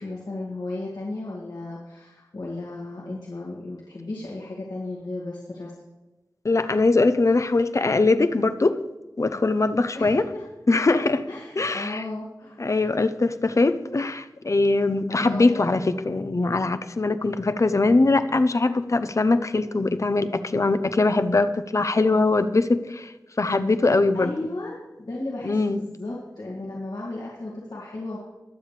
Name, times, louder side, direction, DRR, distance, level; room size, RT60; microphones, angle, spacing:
voice 1, 0.0-5.7 9.9-10.4 11.3-12.6 15.1-15.7 22.0-22.2 24.1-24.7 25.0-28.2, left 2 dB, 75° left, -5 dB, 2.1 m, -34 dB
voice 2, 6.4-8.8 9.2-10.3 10.7-11.3 11.6-12.0 12.6-24.3 25.4-25.8, left 3 dB, 45° left, 11 dB, 0.7 m, -22 dB
21.5 x 7.2 x 3.3 m, 1.1 s
wide cardioid pair, 55°, 7 cm